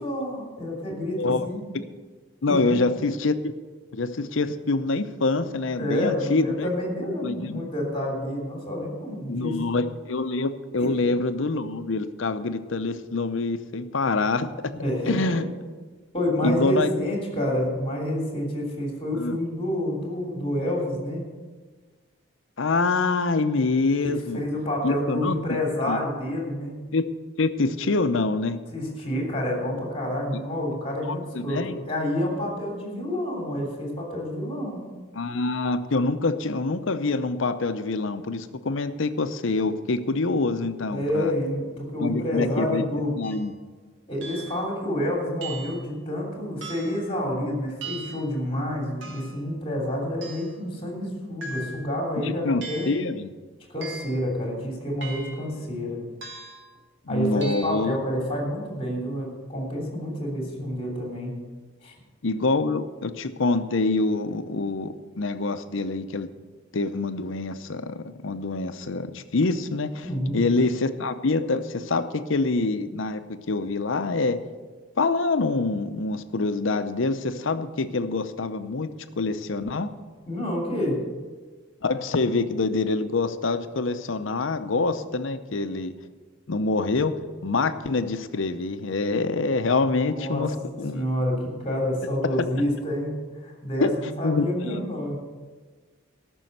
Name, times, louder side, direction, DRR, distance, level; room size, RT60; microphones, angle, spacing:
voice 1, 0.0-1.6 2.5-2.8 5.8-9.6 10.8-11.0 14.7-15.4 16.1-21.2 24.0-26.8 28.7-34.8 40.9-43.1 44.1-52.9 53.7-56.0 57.1-61.3 61.8-61.9 70.0-70.4 80.3-81.0 89.8-90.5 90.9-95.2, left 1 dB, 30° left, -1 dB, 3.0 m, -28 dB
voice 2, 2.4-3.5 3.9-6.7 7.2-7.6 9.3-14.5 15.0-15.4 16.4-16.9 19.1-19.4 22.6-24.4 24.8-25.3 25.9-26.0 26.9-27.1 27.4-28.6 31.0-31.8 35.1-41.3 42.0-42.8 43.2-43.5 52.2-53.3 57.1-58.0 62.2-66.3 66.7-70.1 70.3-73.2 73.5-74.4 75.0-79.9 81.8-85.9 86.5-87.2 87.4-90.5 90.8-91.0 93.8-93.9 94.2-94.8, left 3 dB, 75° left, 10 dB, 0.7 m, -25 dB
sound 1, 43.2-43.5 44.2-44.6 45.4-45.9 46.6-47.0 47.8-48.3 49.0-49.4 50.2-50.6 51.4-51.9 52.6-53.0 53.8-54.2 55.0-55.5 56.2-56.7 57.4-57.8, right 3 dB, 65° right, 2.0 m, -39 dB
13.5 x 6.3 x 7.8 m, 1.4 s
head